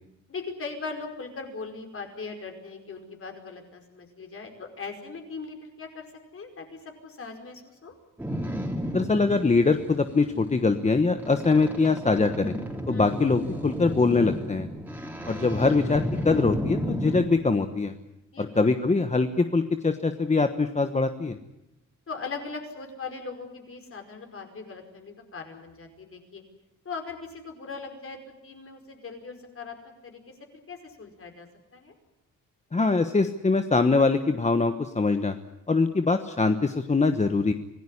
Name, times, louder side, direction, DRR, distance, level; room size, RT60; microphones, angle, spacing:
voice 1, 0.3-6.1 6.3-8.0 12.9-13.1 18.3-18.7 22.1-26.4 26.9-29.8 30.0-30.4 30.7-31.5 31.7-31.9, left 4 dB, 45° left, 4 dB, 5.2 m, -39 dB
Boat Water vehicle, 8.2-17.2, equal, 5° right, 3.9 m, -33 dB
voice 2, 8.9-12.5 12.9-14.7 15.2-17.9 18.4-21.4 32.7-35.3 35.7-37.5, left 3 dB, 20° left, 8 dB, 1.1 m, -23 dB
26.0 x 17.5 x 9.9 m, 0.92 s
cardioid pair, 120°, 31 cm